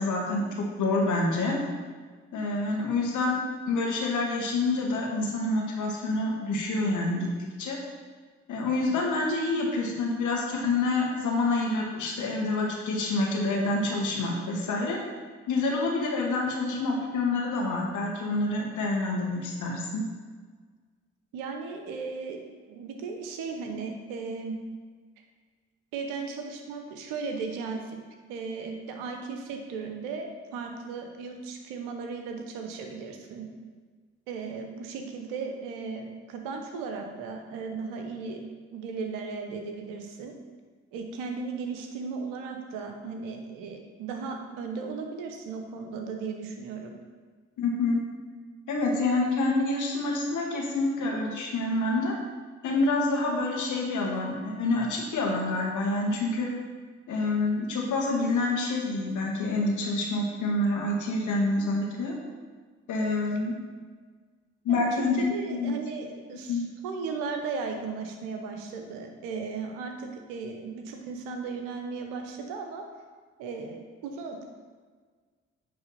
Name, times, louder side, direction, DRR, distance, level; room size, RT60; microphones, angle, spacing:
voice 1, 0.0-1.6 2.3-3.4 3.7-7.3 7.6-7.8 8.5-15.0 15.5-20.0 47.6-48.0 48.7-52.1 52.6-56.5 57.1-62.1 62.9-63.5 64.6-65.7 66.5-66.7, left 2 dB, 65° left, -1 dB, 1.6 m, -27 dB
voice 2, 21.3-22.4 22.7-24.6 25.9-28.0 28.3-33.5 34.3-38.4 38.7-40.3 40.9-46.9 64.7-64.8 65.2-72.8 73.4-74.4, right 4 dB, 80° right, 4 dB, 0.9 m, -36 dB
8.8 x 3.4 x 5.6 m, 1.5 s
hypercardioid pair, 40°, 32 cm